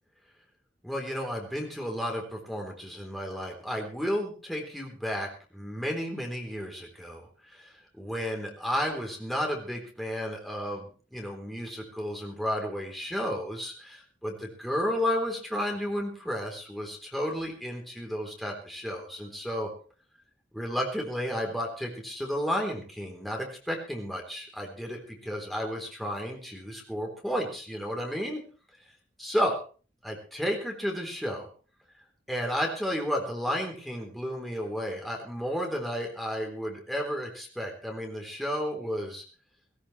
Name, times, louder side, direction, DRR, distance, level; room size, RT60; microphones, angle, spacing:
voice 1, 0.8-19.7 20.5-28.4 29.2-29.6 30.0-31.5 32.3-39.2, equal, ahead, 0 dB, 3.6 m, -32 dB
18.0 x 17.5 x 3.3 m, 0.39 s
head